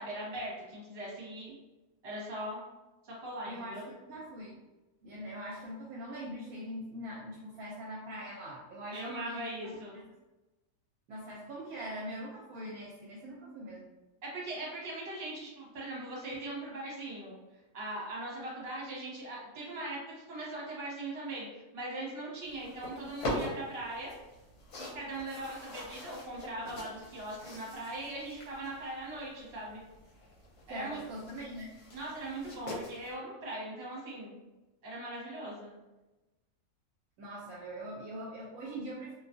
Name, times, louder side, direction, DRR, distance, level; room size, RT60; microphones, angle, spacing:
voice 1, 0.0-1.5 2.0-2.6 3.2-3.8 8.9-10.0 14.2-17.3 17.7-24.1 24.7-29.8 30.7-31.0 31.9-34.4 34.8-35.7, right 1 dB, 45° right, -5 dB, 1.1 m, -40 dB
voice 2, 3.4-4.6 5.0-10.0 11.1-13.9 30.7-31.7 37.2-39.1, equal, 70° right, -6 dB, 1.0 m, -42 dB
sound 1, 22.5-33.1, left 1 dB, 80° left, 1.2 m, -43 dB
2.7 x 2.3 x 2.5 m, 1.1 s
omnidirectional pair, 1.6 m